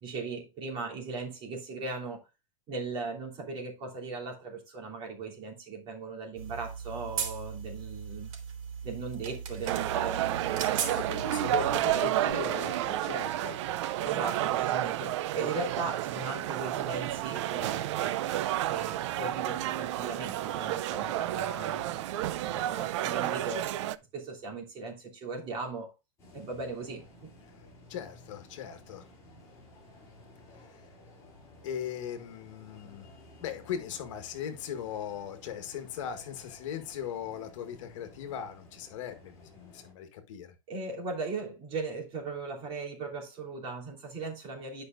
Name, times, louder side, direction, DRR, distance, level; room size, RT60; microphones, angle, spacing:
voice 1, 0.0-2.2 2.7-8.3 8.8-11.0 11.3-12.4 14.0-18.4 18.7-22.0 22.4-23.7 24.1-25.9 26.3-27.3 40.7-44.8, right 3 dB, 30° right, 3.1 m, -38 dB
sound 1, 6.4-11.8, right 7 dB, 80° right, 3.1 m, -38 dB
sound 2, 9.7-24.0, right 13 dB, 60° right, 0.6 m, -31 dB
voice 2, 10.9-13.6 27.5-27.6 27.9-29.0 30.5-30.8 31.6-33.1 33.4-40.5, left 9 dB, 65° left, 1.7 m, -39 dB
sound 3, 26.2-39.9, left 1 dB, 15° left, 5.3 m, -55 dB
11.5 x 5.4 x 2.5 m
supercardioid pair, 155°, 17 cm